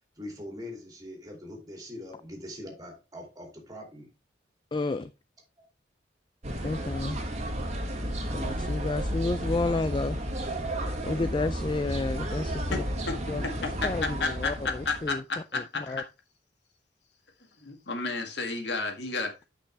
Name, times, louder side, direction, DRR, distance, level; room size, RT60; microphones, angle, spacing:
voice 1, 0.2-4.1, left 1 dB, 20° right, 2.7 m, -42 dB
voice 2, 4.7-5.1 6.6-7.2 8.3-10.2 11.1-12.8 13.3-13.5 13.8-15.2 15.5-16.0, left 3 dB, 25° left, 0.3 m, -31 dB
sound 1, 6.4-15.1, equal, 35° right, 1.9 m, -32 dB
voice 3, 13.4-14.5 14.9-16.1 17.6-19.4, left 3 dB, 65° left, 1.8 m, -32 dB
10.0 x 5.6 x 3.3 m
head